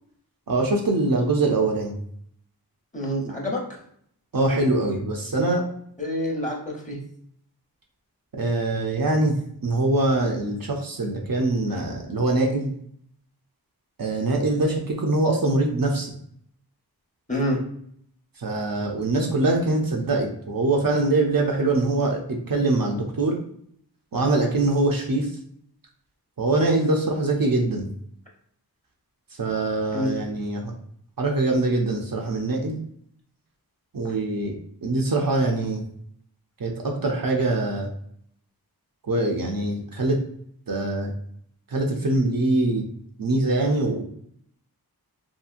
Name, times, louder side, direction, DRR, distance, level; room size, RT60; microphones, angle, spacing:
voice 1, 0.5-2.0 4.3-5.6 8.3-9.4 9.6-12.7 14.0-16.1 18.4-23.4 24.1-25.3 26.4-27.9 29.4-30.7 31.2-32.8 33.9-34.5 34.8-35.8 36.6-37.9 39.1-40.2 40.7-41.1 41.7-42.8 43.2-44.0, right 2 dB, 60° right, 1 dB, 0.6 m, -23 dB
voice 2, 2.9-3.8 6.0-7.0 11.7-11.8 17.3-17.6 29.9-30.1, equal, 20° left, -2 dB, 0.9 m, -27 dB
2.7 x 2.7 x 2.4 m, 0.66 s
wide cardioid pair, 45°, 39 cm